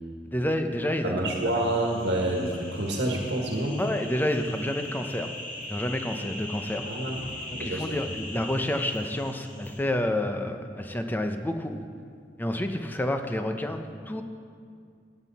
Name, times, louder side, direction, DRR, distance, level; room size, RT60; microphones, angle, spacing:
voice 1, 0.3-1.1 3.8-5.3 5.7-6.9 7.5-11.8 12.4-13.8 14.1-14.2, left 1 dB, 10° left, 6 dB, 0.7 m, -29 dB
voice 2, 1.0-3.8 6.9-8.0, right 1 dB, 75° right, 0 dB, 1.5 m, -28 dB
sound 1, 1.3-9.8, left 1 dB, 50° left, 2.0 m, -40 dB
15.0 x 9.2 x 4.1 m, 2.3 s
head